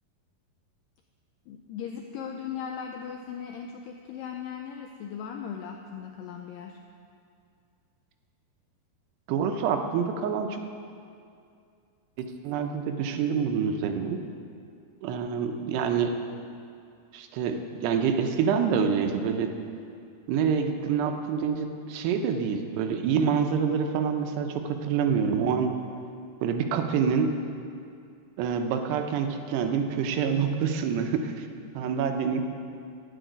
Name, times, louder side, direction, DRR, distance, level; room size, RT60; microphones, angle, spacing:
voice 1, 1.5-6.8 31.6-31.8, left 7 dB, 85° left, 3 dB, 1.9 m, -38 dB
voice 2, 9.3-10.6 12.2-14.2 15.0-16.1 17.1-19.5 20.3-25.7 26.4-27.3 28.4-31.5 31.7-32.4, right 6 dB, 85° right, 5 dB, 3.0 m, -26 dB
10.5 x 7.7 x 9.2 m, 2.4 s
omnidirectional pair, 4.7 m